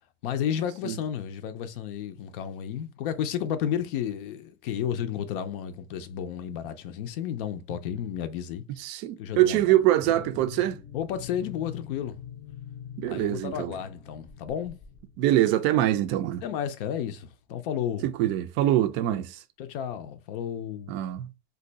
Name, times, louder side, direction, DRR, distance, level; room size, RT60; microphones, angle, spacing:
voice 1, 0.2-8.6 9.2-9.7 10.9-12.2 13.1-14.8 16.4-18.1 19.1-19.2 19.6-20.9, left 9 dB, 60° left, 0.5 m, -32 dB
voice 2, 8.8-10.8 13.0-13.7 15.2-16.4 18.0-19.4 20.9-21.3, right 13 dB, 35° right, 0.4 m, -24 dB
sound 1, 10.0-15.9, left 8 dB, 20° left, 0.8 m, -44 dB
2.6 x 2.2 x 3.9 m
supercardioid pair, 145°, 32 cm